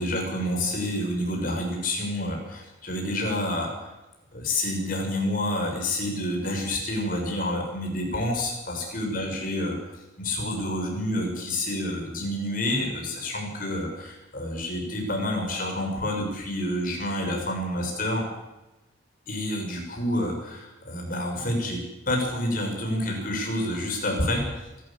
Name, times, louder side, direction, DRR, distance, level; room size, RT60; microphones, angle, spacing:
voice 1, 0.0-3.9 4.3-9.7 10.2-18.2 19.3-21.8 22.1-24.4, left 1 dB, 45° left, 1 dB, 6.6 m, -28 dB
24.5 x 13.0 x 9.0 m, 1.0 s
head